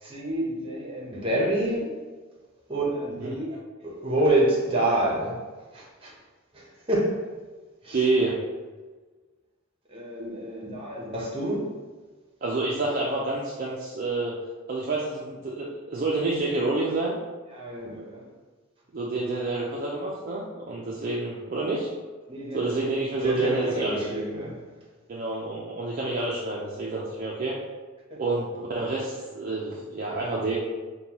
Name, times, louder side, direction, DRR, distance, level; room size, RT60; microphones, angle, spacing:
voice 1, 0.0-2.0 2.7-3.5 3.8-5.4 5.7-6.1 6.5-7.3 7.8-8.0 9.9-11.7 17.5-18.2 22.3-22.8 23.2-24.6, right 1 dB, 25° right, 0.8 m, -27 dB
voice 2, 3.2-3.6 7.9-8.4 12.4-14.3 14.7-17.2 18.9-21.9 22.5-24.0 25.1-27.6 28.2-30.6, right 2 dB, 40° right, 0.4 m, -28 dB
5.2 x 2.2 x 2.9 m
head